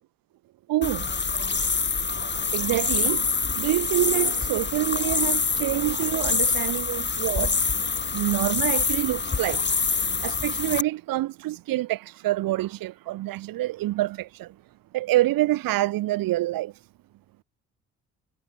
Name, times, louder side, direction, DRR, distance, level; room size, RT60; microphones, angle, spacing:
voice 1, 0.7-1.1 2.2-7.9 8.1-14.5 14.9-16.7, right 16 dB, 60° right, 7.9 m, -27 dB
sound 1, 0.8-10.8, left 4 dB, 30° left, 6.2 m, -26 dB
figure-of-eight pair, 50°, 38 cm